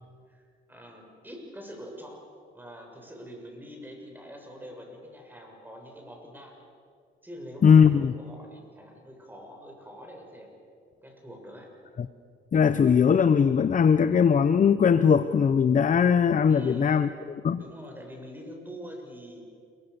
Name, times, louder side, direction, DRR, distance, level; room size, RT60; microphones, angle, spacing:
voice 1, 0.3-2.3 2.5-6.5 7.2-10.6 11.0-11.7 16.5-17.0 17.6-19.4, equal, 10° right, 1 dB, 7.3 m, -45 dB
voice 2, 7.6-8.1 12.0-12.1 12.5-17.1 17.4-17.6, left 7 dB, 40° left, 13 dB, 0.8 m, -20 dB
28.5 x 23.0 x 7.0 m, 2.2 s
cardioid pair, 90°, 20 cm